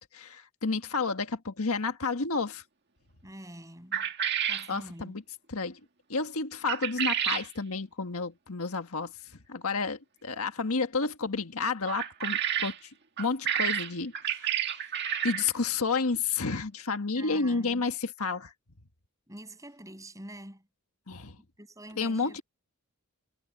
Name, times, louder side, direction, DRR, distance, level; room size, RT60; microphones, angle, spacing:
voice 1, 0.1-2.6 4.7-5.2 5.5-5.8 6.1-9.1 9.5-12.9 13.2-14.8 15.2-18.5 21.1-21.4 22.0-22.4, left 4 dB, 80° left, 1.6 m, -31 dB
voice 2, 3.2-4.1 4.4-5.2 17.1-17.8 19.3-20.7 21.4-22.4, right 1 dB, 15° right, 6.6 m, -46 dB
sound 1, 3.9-4.7 6.7-7.5 11.9-12.8 13.2-15.5, right 9 dB, 50° right, 2.0 m, -30 dB
head